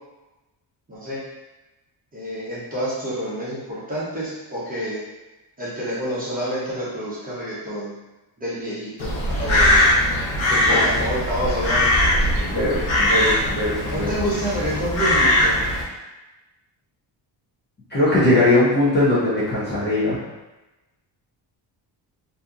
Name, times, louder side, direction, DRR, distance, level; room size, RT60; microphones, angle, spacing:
voice 1, 0.9-1.2 2.1-5.0 5.6-7.9 8.4-9.1 9.4-9.9 10.7-11.9 13.9-15.6, equal, 20° right, -9 dB, 0.8 m, -28 dB
Crow, 9.0-15.8, left 1 dB, 90° left, 0.8 m, -20 dB
voice 2, 10.5-10.9 12.4-14.2 17.9-20.2, left 1 dB, 25° left, -10 dB, 0.6 m, -20 dB
2.7 x 2.7 x 2.4 m, 1.1 s
cardioid pair, 165°, 43 cm